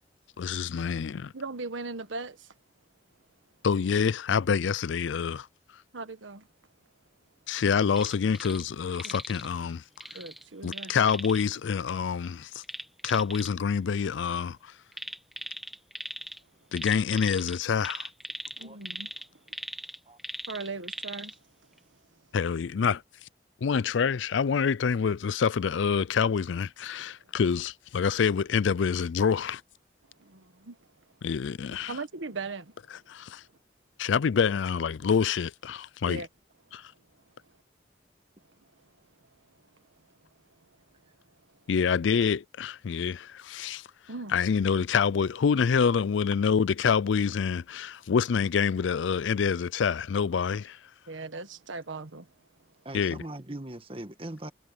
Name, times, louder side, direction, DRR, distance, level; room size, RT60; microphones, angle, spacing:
voice 1, 0.4-1.3 3.6-5.5 7.5-9.8 10.6-12.6 13.0-14.7 16.7-18.1 22.3-23.0 23.6-29.6 31.2-31.9 33.1-33.4 34.0-36.2 36.7-36.9 41.7-43.9 44.3-50.8 52.9-53.2, left 6 dB, 80° left, 0.4 m, -26 dB
voice 2, 1.3-2.5 5.9-6.5 9.0-9.1 10.1-10.9 18.6-19.1 20.5-21.4 21.7-21.8 22.1-22.2 30.2-30.9 31.9-32.8 36.1-36.3 38.5-38.8 39.5-40.2 40.6-40.8 41.3-41.4 44.1-44.3 51.1-52.3, right 3 dB, 90° right, 1.5 m, -39 dB
sound 1, 7.9-8.6 8.9-9.5 10.0-11.4 12.6-13.5 14.9-16.4 16.7-21.3 21.8-21.9, equal, ahead, 1.4 m, -39 dB
voice 3, 18.5-18.8 20.1-20.2 52.9-54.5, right 1 dB, 30° right, 1.7 m, -40 dB
head